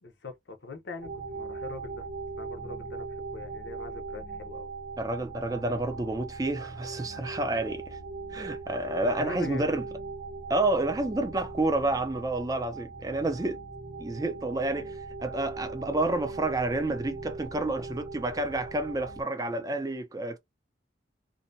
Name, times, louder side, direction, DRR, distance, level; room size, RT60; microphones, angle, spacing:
voice 1, 0.0-2.1 2.4-4.7 9.0-9.7, left 3 dB, 75° left, 0.8 m, -41 dB
sound 1, 1.0-19.2, right 3 dB, 35° right, 1.0 m, -40 dB
voice 2, 5.0-8.0 8.3-9.8 10.5-13.6 14.0-20.4, right 2 dB, 20° right, 0.4 m, -29 dB
2.6 x 2.1 x 2.6 m
head